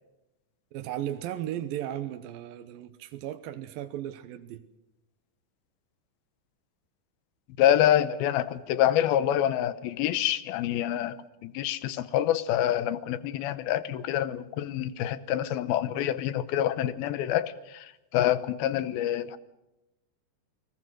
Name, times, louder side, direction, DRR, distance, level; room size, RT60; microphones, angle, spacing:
voice 1, 0.7-4.6, right 12 dB, 80° right, 9 dB, 2.7 m, -36 dB
voice 2, 7.6-11.2 11.4-19.4, left 11 dB, 90° left, 15 dB, 2.8 m, -26 dB
29.5 x 19.5 x 6.3 m, 0.94 s
omnidirectional pair, 4.2 m